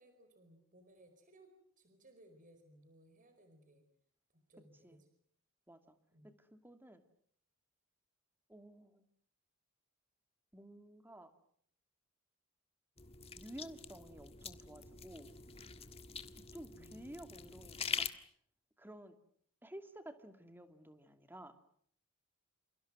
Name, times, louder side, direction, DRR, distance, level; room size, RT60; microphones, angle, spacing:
voice 1, 0.0-3.9 4.3-5.1 6.1-6.3 16.7-17.3, right 1 dB, 35° right, 8 dB, 4.8 m, -63 dB
voice 2, 6.4-7.0 8.5-9.0 10.5-11.3 13.3-15.3 16.5-18.1 18.8-19.2 19.6-21.5, right 1 dB, 10° right, 8 dB, 2.4 m, -53 dB
sound 1, 13.0-18.1, left 6 dB, 25° left, 1.6 m, -44 dB
29.0 x 28.5 x 6.2 m, 0.64 s
head